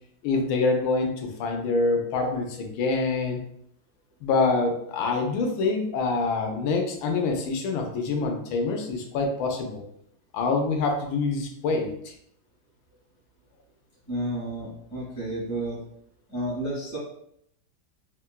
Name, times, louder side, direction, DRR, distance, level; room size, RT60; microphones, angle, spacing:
voice 1, 0.2-3.4 4.2-9.8 10.3-12.1, left 3 dB, 80° left, 3 dB, 1.4 m, -26 dB
voice 2, 14.1-15.8 16.3-17.0, right 1 dB, 50° left, -10 dB, 1.3 m, -31 dB
3.7 x 2.1 x 2.2 m, 0.71 s
omnidirectional pair, 2.1 m